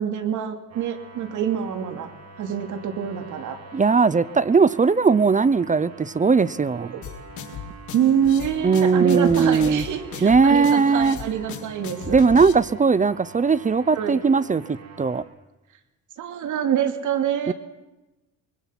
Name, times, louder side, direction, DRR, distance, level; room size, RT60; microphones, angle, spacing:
voice 1, 0.0-2.1 2.4-3.6 6.9-7.0 7.9-12.2 14.0-14.2 16.2-17.5, right 9 dB, 80° right, 7 dB, 2.8 m, -25 dB
sound 1, 0.7-15.2, right 4 dB, 55° right, 7.1 m, -44 dB
voice 2, 3.7-6.9 8.6-9.8 10.2-11.2 12.1-15.2 17.5-17.6, right 5 dB, 25° right, 19 dB, 0.7 m, -19 dB
sound 2, 7.0-12.5, left 7 dB, 75° left, 3.7 m, -36 dB
25.5 x 24.0 x 5.9 m, 1.1 s
cardioid pair, 90°, 30 cm